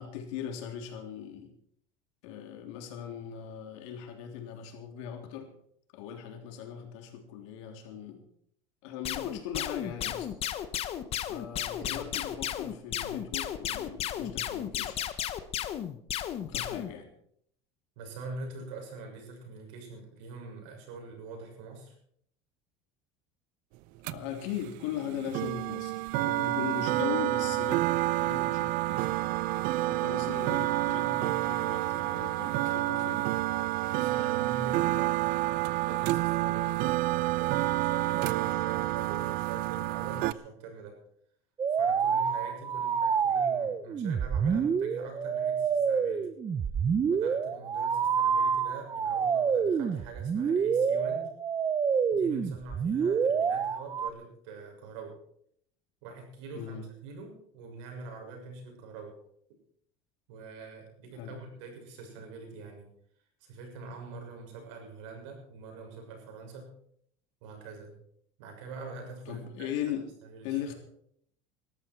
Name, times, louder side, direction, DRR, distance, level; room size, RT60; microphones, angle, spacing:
voice 1, 0.0-1.5 2.2-5.5 5.9-8.2 8.8-10.3 11.3-15.0 16.4-17.1 24.1-27.9 28.2-29.3 29.9-33.3 56.6-56.9 61.2-61.4 69.3-70.1 70.4-70.7, left 9 dB, 85° left, 4 dB, 3.4 m, -39 dB
sound 1, 9.0-16.9, left 11 dB, 40° left, 1.2 m, -33 dB
voice 2, 18.0-21.9 33.9-41.0 41.7-46.3 47.1-51.3 52.1-55.2 56.0-59.1 60.3-62.9 63.4-66.7 67.4-67.9 68.4-69.7 70.2-70.6, right 3 dB, 85° right, 2 dB, 6.6 m, -44 dB
sound 2, 24.0-40.3, right 18 dB, 65° right, 0.7 m, -29 dB
sound 3, 41.6-54.1, right 6 dB, 25° right, 0.8 m, -27 dB
19.0 x 13.5 x 4.6 m, 0.68 s
cardioid pair, 140°, 15 cm